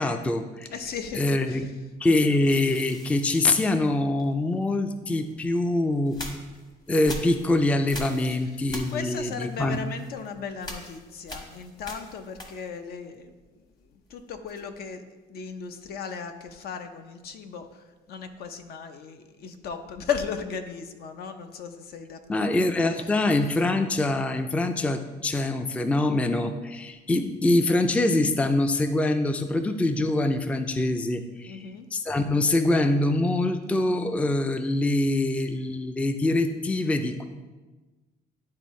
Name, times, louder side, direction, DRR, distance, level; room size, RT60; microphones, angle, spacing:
voice 1, 0.0-0.7 1.1-1.7 2.0-6.2 6.9-9.8 22.3-31.6 31.9-37.2, left 2 dB, 10° left, 9 dB, 0.3 m, -24 dB
voice 2, 0.7-1.6 8.2-8.4 8.8-13.3 13.9-15.0 15.3-22.5 31.4-31.9, left 6 dB, 65° left, 8 dB, 0.6 m, -36 dB
sound 1, 2.4-4.6 5.3-12.9 13.2-14.9, left 1 dB, 25° left, 1.0 m, -43 dB
10.5 x 3.7 x 3.1 m, 1.2 s
cardioid pair, 110°, 17 cm